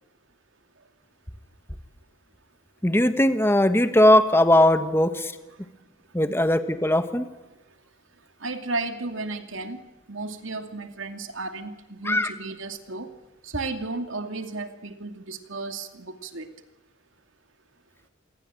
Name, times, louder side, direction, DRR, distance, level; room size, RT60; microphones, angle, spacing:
voice 1, 2.8-5.3 6.1-7.3 12.0-12.3, left 1 dB, 10° left, 9 dB, 1.5 m, -19 dB
voice 2, 8.4-9.8 10.1-13.1 13.4-16.5, right 3 dB, 80° right, 7 dB, 2.5 m, -33 dB
27.0 x 21.0 x 9.0 m, 1.1 s
head